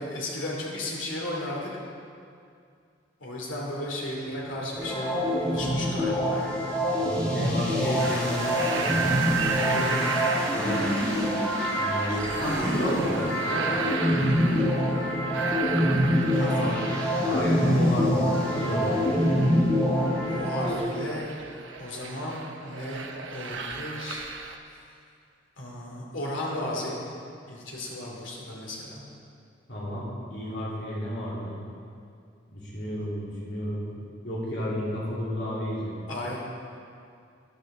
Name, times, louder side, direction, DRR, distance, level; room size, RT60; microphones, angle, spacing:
voice 1, 0.0-1.7 3.2-6.7 16.3-16.7 20.3-21.3 21.8-24.2 24.7-24.8 25.6-27.0 27.5-29.0 36.1-36.4, left 1 dB, 85° left, -3 dB, 2.6 m, -35 dB
sound 1, 4.8-20.8, equal, 5° left, 2.0 m, -25 dB
voice 2, 7.0-9.0 9.4-10.0 10.5-10.8 11.8-13.2 13.4-13.9 16.6-16.7 17.2-19.0 29.7-31.6 32.5-33.9 34.2-35.9, equal, 65° left, -7 dB, 3.2 m, -32 dB
sound 2, 8.0-24.6, right 5 dB, 80° right, 0.8 m, -34 dB
12.5 x 11.5 x 3.8 m, 2.3 s
head